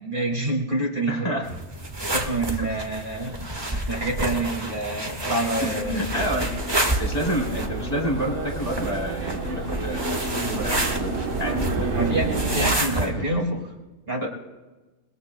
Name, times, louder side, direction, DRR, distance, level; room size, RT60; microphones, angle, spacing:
voice 1, 0.0-1.4 2.1-3.5 3.9-6.2 11.9-13.6 14.1-14.3, right 2 dB, 40° right, -1 dB, 2.4 m, -27 dB
voice 2, 1.1-1.5 2.6-2.7 5.6-6.5 7.0-11.9 12.2-12.4 13.0-13.6 14.2-14.3, right 1 dB, 30° left, -2 dB, 3.6 m, -29 dB
sound 1, 1.4-13.1, right 1 dB, 20° right, 1.4 m, -29 dB
sound 2, 5.6-13.4, left 3 dB, 70° left, 1.4 m, -39 dB
sound 3, 6.1-12.8, right 4 dB, 60° right, 1.4 m, -30 dB
28.0 x 21.0 x 2.2 m, 1.2 s
omnidirectional pair, 1.4 m